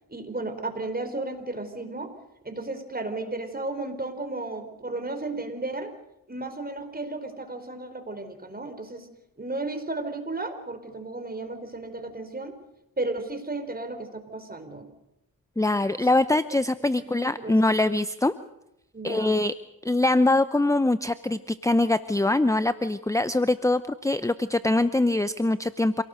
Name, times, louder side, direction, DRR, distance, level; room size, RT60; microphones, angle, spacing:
voice 1, 0.1-2.1 2.4-5.9 6.3-9.1 9.4-12.6 13.0-14.9 16.0-16.1 17.1-17.8 18.9-19.3, right 2 dB, 25° right, 7 dB, 4.6 m, -34 dB
voice 2, 15.6-18.3 19.0-19.5 19.8-26.0, left 2 dB, 10° left, 13 dB, 0.8 m, -23 dB
27.0 x 18.0 x 6.7 m, 0.88 s
cardioid pair, 55°, 35 cm